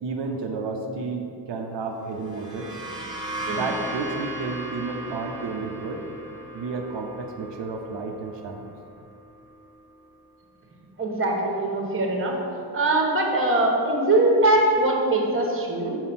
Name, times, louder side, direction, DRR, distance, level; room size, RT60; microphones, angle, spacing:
voice 1, 0.0-2.7 3.5-6.0 6.5-8.7, right 4 dB, 90° right, 2 dB, 0.7 m, -31 dB
sound 1, 2.1-9.7, right 1 dB, 10° right, 1.2 m, -37 dB
voice 2, 11.0-12.4 12.7-16.0, right 2 dB, 30° right, 0 dB, 1.2 m, -22 dB
5.8 x 4.4 x 6.0 m, 2.5 s
wide cardioid pair, 120°, 42 cm